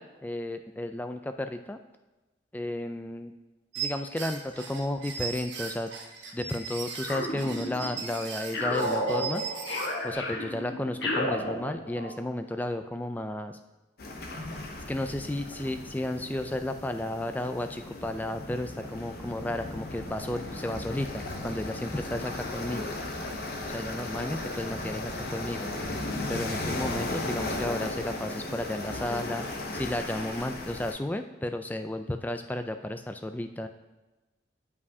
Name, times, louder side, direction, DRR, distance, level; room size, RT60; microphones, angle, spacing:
voice 1, 0.0-1.8 2.5-3.3 3.8-5.9 6.3-9.4 10.0-13.6 14.9-23.0 23.7-25.7 26.3-33.7, left 1 dB, 10° left, 8 dB, 0.3 m, -33 dB
sound 1, 3.7-10.1, right 6 dB, 75° right, 1.0 m, -38 dB
sound 2, 7.1-8.0 8.5-12.2, left 1 dB, 70° left, 1.1 m, -32 dB
sound 3, 14.0-30.9, left 2 dB, 55° left, 0.7 m, -36 dB
10.5 x 4.8 x 2.7 m, 1.1 s
head